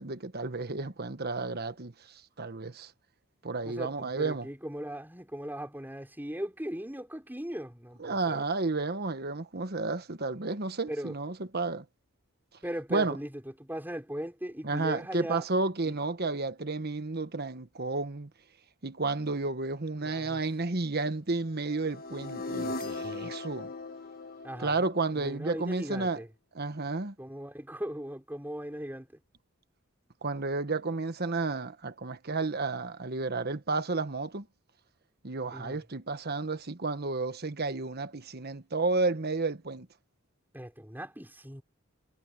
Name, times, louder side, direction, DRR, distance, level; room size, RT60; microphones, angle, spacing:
voice 1, 0.0-1.9 2.4-2.9 3.4-4.5 8.0-11.8 12.9-13.2 14.6-18.3 18.8-23.7 24.6-26.2 26.5-27.1 30.2-34.4 35.2-39.9, right 3 dB, 50° right, 1.3 m, -32 dB
voice 2, 3.6-8.4 10.9-11.1 12.6-13.3 13.6-15.4 15.8-16.0 20.0-20.4 24.4-26.3 27.2-29.1 35.5-35.8 40.5-41.6, equal, 10° right, 5.3 m, -38 dB
sound 1, 21.6-25.7, left 3 dB, 45° left, 1.6 m, -39 dB
head